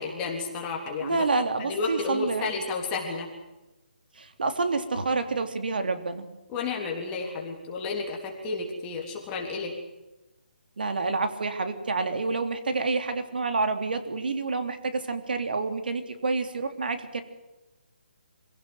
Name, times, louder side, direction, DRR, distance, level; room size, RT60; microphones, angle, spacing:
voice 1, 0.0-1.2 1.6-3.3 6.5-9.7, left 4 dB, 15° left, 0 dB, 3.5 m, -31 dB
voice 2, 1.0-2.6 4.2-6.3 10.8-17.2, right 3 dB, 65° right, 7 dB, 3.4 m, -28 dB
26.5 x 17.5 x 8.0 m, 1.0 s
hypercardioid pair, 175°, 5 cm